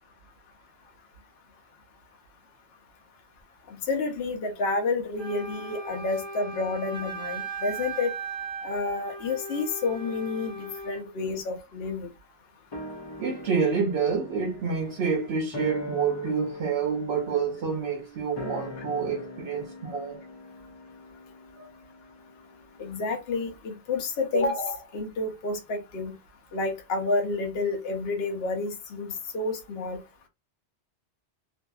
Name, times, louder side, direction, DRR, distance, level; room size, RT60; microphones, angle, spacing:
voice 1, 3.9-8.1 8.6-12.1 22.8-26.1 26.5-30.0, left 3 dB, 65° left, 0.9 m, -29 dB
Wind instrument woodwind instrument, 5.2-11.1, right 3 dB, 25° right, 0.9 m, -37 dB
sound 1, 12.7-23.3 23.6-23.7, left 2 dB, 45° left, 0.3 m, -42 dB
voice 2, 13.2-20.2 21.6-21.7, right 5 dB, 70° right, 0.8 m, -28 dB
2.6 x 2.5 x 2.2 m
omnidirectional pair, 1.2 m